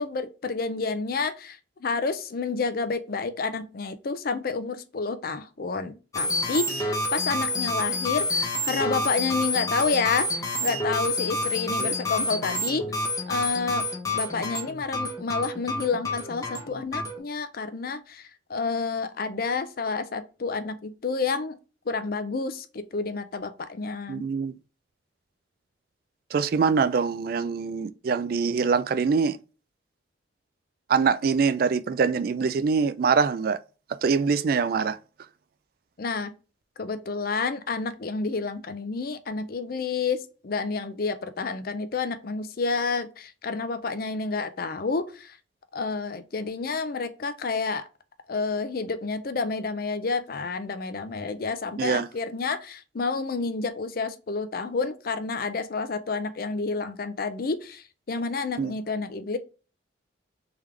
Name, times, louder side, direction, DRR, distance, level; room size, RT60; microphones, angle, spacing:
voice 1, 0.0-12.8 13.3-13.8 14.1-21.6 21.9-24.2 36.0-36.3 36.8-45.4 45.7-47.9 48.3-59.4, left 4 dB, 50° left, 0.5 m, -29 dB
sound 1, 6.1-17.2, left 2 dB, 15° left, 0.9 m, -28 dB
voice 2, 24.1-24.5 26.3-29.4 30.9-33.6 34.0-35.0 51.8-52.1 58.6-58.7, right 5 dB, 50° right, 0.3 m, -24 dB
3.5 x 3.4 x 3.2 m
head